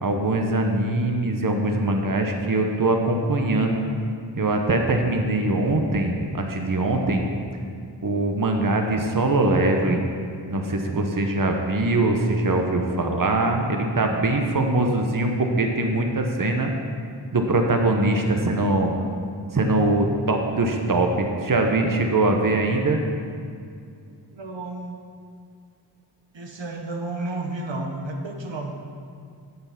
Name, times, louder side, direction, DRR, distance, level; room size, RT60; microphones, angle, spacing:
voice 1, 0.0-3.8 4.4-7.2 8.0-10.0 10.5-16.7 17.3-18.9 19.5-23.0, right 2 dB, 50° right, 3 dB, 1.0 m, -22 dB
voice 2, 24.3-25.0 26.3-28.8, right 2 dB, 85° right, 1 dB, 1.1 m, -32 dB
8.1 x 7.8 x 5.7 m, 2.3 s
wide cardioid pair, 60°, 43 cm